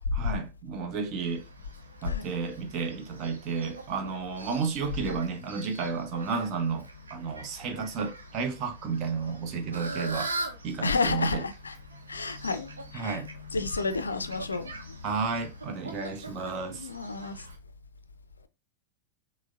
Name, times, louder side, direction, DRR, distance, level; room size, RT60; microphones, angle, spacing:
voice 1, 0.2-1.4 2.0-10.3 10.6-11.4 12.9-13.3 15.0-16.9, right 5 dB, 35° right, 0.8 m, -32 dB
Fowl, 1.2-17.5, right 1 dB, 75° right, 0.7 m, -42 dB
voice 2, 10.8-11.8 12.1-13.2 13.5-15.0 16.7-17.5, left 4 dB, 75° left, 0.4 m, -31 dB
6.1 x 2.1 x 2.4 m
figure-of-eight pair, 90°, 0 cm